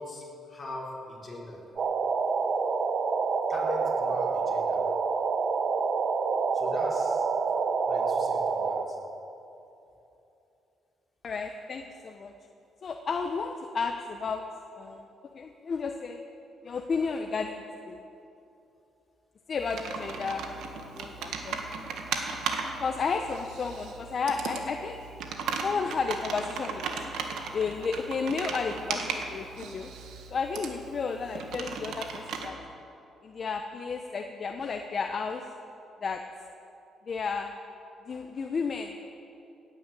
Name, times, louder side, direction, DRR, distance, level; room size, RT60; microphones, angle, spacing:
voice 1, 0.0-1.6 3.5-4.8 6.5-7.2 7.9-9.0, left 2 dB, 25° left, -4 dB, 4.4 m, -40 dB
sound 1, 1.8-8.8, right 5 dB, 50° right, 1.1 m, -27 dB
voice 2, 11.2-12.3 12.8-14.4 14.7-15.1 15.3-16.2 16.6-18.0 19.5-20.5 20.9-21.6 22.8-25.0 25.6-26.8 27.5-29.9 30.3-32.6 33.2-35.4 36.0-36.2 37.1-37.5 38.1-38.9, left 5 dB, 45° left, 5 dB, 0.9 m, -32 dB
Computer keyboard, 19.6-32.5, right 5 dB, 85° right, 1.7 m, -37 dB
18.0 x 10.0 x 7.7 m, 2.8 s
cardioid pair, 90°, 0 cm